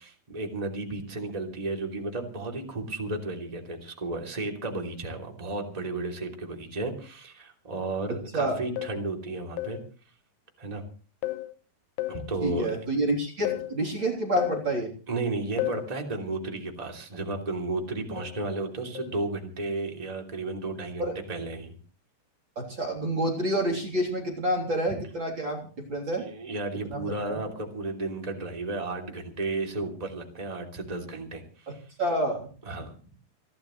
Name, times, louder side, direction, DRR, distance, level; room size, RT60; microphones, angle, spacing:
voice 1, 0.0-9.8 10.6-10.8 12.1-12.8 15.1-21.8 26.2-31.8 32.6-32.9, right 2 dB, 10° right, 1 dB, 2.3 m, -33 dB
sound 1, 8.8-9.1 9.6-9.9 11.2-11.5 12.0-12.3 13.4-13.8 14.4-14.7 15.6-15.9 18.2-18.4 18.9-19.2, left 17 dB, 75° left, 2.1 m, -32 dB
voice 2, 12.4-14.9 21.0-21.1 22.6-26.2 26.9-27.4 31.7-31.8 32.0-32.5, right 1 dB, 30° right, -1 dB, 3.6 m, -28 dB
29.0 x 11.5 x 3.2 m, 0.39 s
omnidirectional pair, 4.6 m